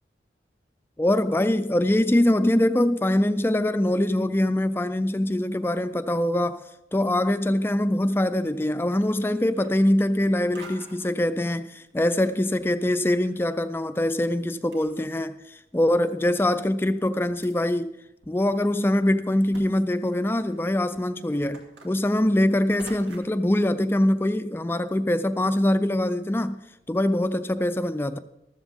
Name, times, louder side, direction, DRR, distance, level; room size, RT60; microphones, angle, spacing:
voice 1, 1.0-6.6 6.9-17.9 18.3-26.6 26.9-28.2, left 1 dB, 15° left, 0.3 m, -23 dB
sound 1, 8.2-8.6 8.9-10.3 10.5-11.1 11.9-13.5 13.7-13.8 14.4-14.5 14.7-15.5 16.1-16.2 16.8-17.5 18.2-18.3 18.7-18.8 19.5-19.7 19.9-23.4, right 2 dB, 85° right, 2.5 m, -49 dB
14.5 x 13.5 x 3.5 m
head